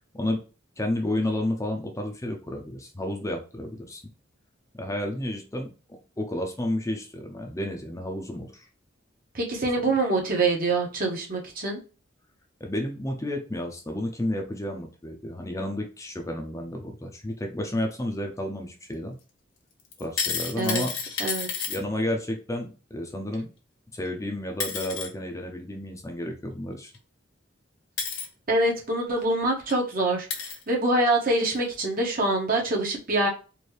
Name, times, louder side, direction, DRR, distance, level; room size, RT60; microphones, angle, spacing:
voice 1, 0.8-4.0 4.7-5.7 6.2-8.7 12.6-19.2 20.0-20.9 21.7-23.5 23.9-26.9, left 1 dB, 15° left, 0.7 m, -31 dB
voice 2, 9.3-11.8 20.5-20.8 21.2-21.7 28.5-33.3, right 2 dB, 45° right, 1.4 m, -25 dB
sound 1, 19.9-21.8 24.1-24.2 24.6-25.1 26.9-27.0 28.0-28.3 29.2-29.3 29.7-29.8 30.3-30.6 31.5-31.6, left 6 dB, 70° left, 1.3 m, -30 dB
4.4 x 2.7 x 3.2 m
head